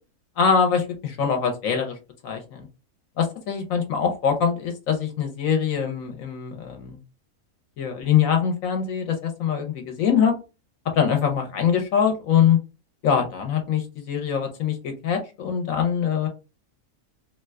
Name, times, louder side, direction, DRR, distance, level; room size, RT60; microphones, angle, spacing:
voice 1, 0.4-2.0 2.2-2.7 3.2-7.0 7.8-10.3 10.9-12.6 13.0-16.3, left 7 dB, 70° left, 4 dB, 1.1 m, -23 dB
2.8 x 2.3 x 3.3 m, 0.30 s
omnidirectional pair, 1.6 m